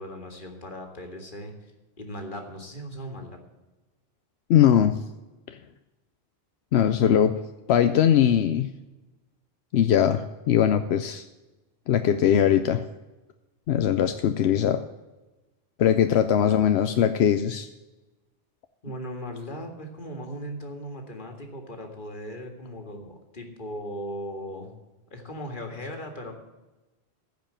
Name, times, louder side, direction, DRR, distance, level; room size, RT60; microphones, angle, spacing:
voice 1, 0.0-1.7 2.0-3.4 16.1-16.2 18.8-24.7 25.1-26.3, equal, 55° left, 3 dB, 2.1 m, -38 dB
voice 2, 4.5-5.0 5.5-5.6 6.7-7.4 7.7-8.7 9.7-11.2 11.9-12.8 13.7-14.8 15.8-17.7, left 9 dB, 85° left, 9 dB, 0.9 m, -21 dB
14.5 x 5.2 x 8.7 m, 1.1 s
omnidirectional pair, 1.0 m